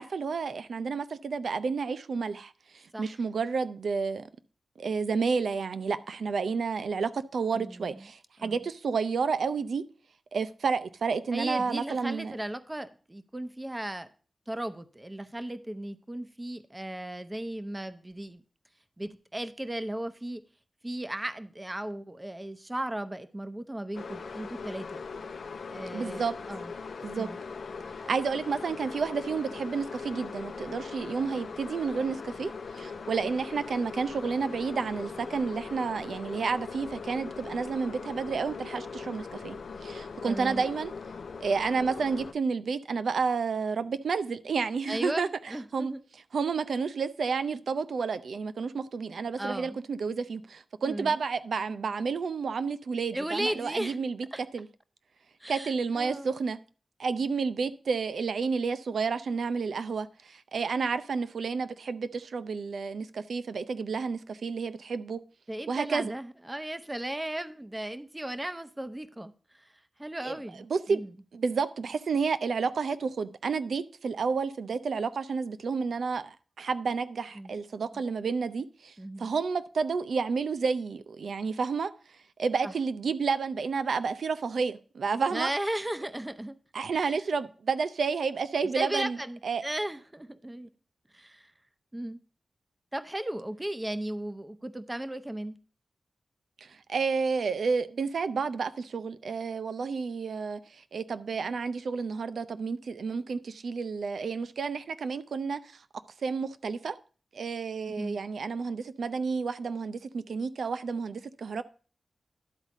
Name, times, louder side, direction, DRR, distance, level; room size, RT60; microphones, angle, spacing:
voice 1, 0.0-4.2 4.8-9.8 10.3-12.3 25.9-26.3 27.0-27.3 28.1-39.6 39.8-40.9 41.4-45.3 45.7-45.9 46.3-54.2 54.5-54.7 55.5-56.6 57.0-65.2 65.7-66.1 70.2-70.4 70.7-71.0 71.3-81.9 82.4-85.5 86.7-89.2 89.4-89.6 96.6-105.8 106.2-107.0 107.3-111.6, right 5 dB, 80° right, 0.5 m, -30 dB
voice 2, 7.5-8.0 8.4-8.6 11.3-14.1 14.5-18.4 19.0-20.4 20.8-25.0 25.7-26.7 27.2-27.4 40.3-40.6 44.9-46.0 49.4-49.8 50.8-51.2 53.1-54.0 54.3-54.4 55.4-56.3 65.5-69.7 70.0-71.1 77.4-77.5 79.0-79.3 82.6-82.7 85.3-86.6 86.9-87.2 88.7-90.7 91.1-91.5 91.9-92.2 92.9-95.6 107.9-108.2, right 1 dB, 20° right, 0.8 m, -36 dB
sound 1, 23.9-42.3, left 5 dB, 80° left, 0.6 m, -40 dB
11.5 x 4.1 x 5.9 m
cardioid pair, 50°, 0 cm